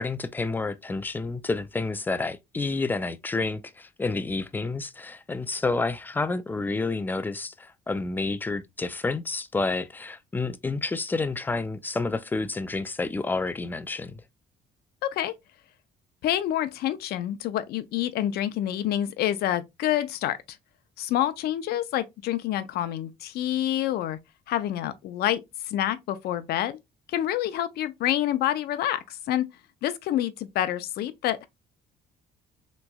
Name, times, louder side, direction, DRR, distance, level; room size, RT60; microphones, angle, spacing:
voice 1, 0.0-14.2, left 3 dB, 10° left, 0.3 m, -29 dB
voice 2, 15.0-15.3 16.2-20.4 21.0-24.2 24.5-25.4 25.7-26.8 27.1-29.5 29.8-31.5, left 12 dB, 70° left, 0.5 m, -27 dB
3.4 x 3.0 x 2.2 m
cardioid pair, 110°, 17 cm